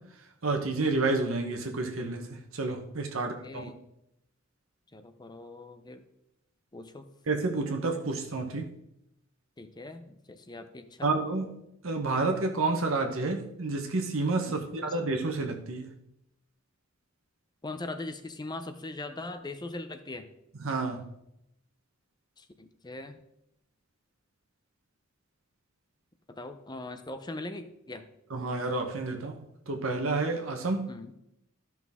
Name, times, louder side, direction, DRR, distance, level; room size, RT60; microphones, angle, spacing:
voice 1, 0.0-3.7 7.3-8.7 11.0-11.5 11.8-15.9 20.6-21.1 28.3-30.9, right 3 dB, 80° right, 1.0 m, -30 dB
voice 2, 3.1-3.7 4.9-6.0 6.7-7.1 9.6-11.1 14.5-14.7 17.6-20.3 22.4-23.2 26.3-28.1 30.9-31.1, left 2 dB, 20° left, 0.7 m, -41 dB
13.0 x 6.0 x 3.6 m
head